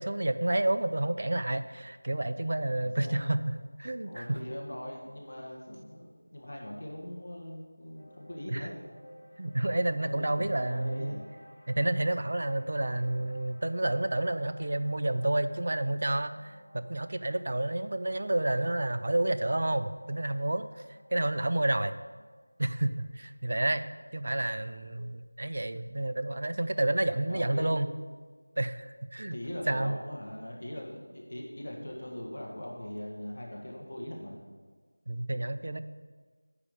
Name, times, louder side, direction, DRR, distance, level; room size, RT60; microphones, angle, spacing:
voice 1, 0.0-4.4 8.5-8.7 9.4-11.1 11.7-20.7 21.1-22.0 22.6-27.9 28.6-29.4 29.7-30.0 35.1-35.8, right 1 dB, 40° right, 12 dB, 0.4 m, -30 dB
voice 2, 2.8-3.3 4.0-8.7 10.0-11.3 27.3-27.7 29.3-34.4, left 1 dB, 50° left, -1 dB, 1.6 m, -41 dB
sound 1, 7.9-24.2, equal, 10° left, 1.6 m, -56 dB
9.7 x 4.9 x 6.6 m, 1.5 s
figure-of-eight pair, 175°, 0 cm